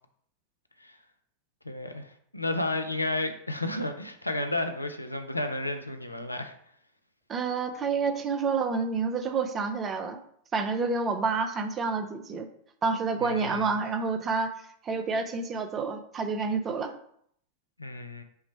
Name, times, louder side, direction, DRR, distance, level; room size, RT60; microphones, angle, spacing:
voice 1, 1.6-6.5 13.2-13.7 17.8-18.2, left 2 dB, 85° left, 6 dB, 0.4 m, -32 dB
voice 2, 7.3-10.2 10.5-12.5 12.8-14.5 14.8-16.9, right 4 dB, 25° right, 8 dB, 0.5 m, -29 dB
5.5 x 2.1 x 4.4 m, 0.67 s
figure-of-eight pair, 90°, 0 cm